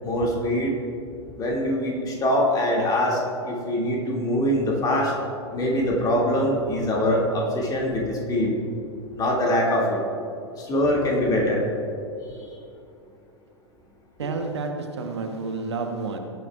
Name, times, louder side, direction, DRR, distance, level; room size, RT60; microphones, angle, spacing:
voice 1, 0.0-0.7 1.4-5.1 5.5-8.5 9.1-10.0 10.6-11.6 12.3-12.6, left 1 dB, 25° left, -2 dB, 2.5 m, -23 dB
voice 2, 14.2-16.2, right 4 dB, 65° right, 4 dB, 1.2 m, -30 dB
18.5 x 9.3 x 2.5 m, 2.6 s
figure-of-eight pair, 90°, 15 cm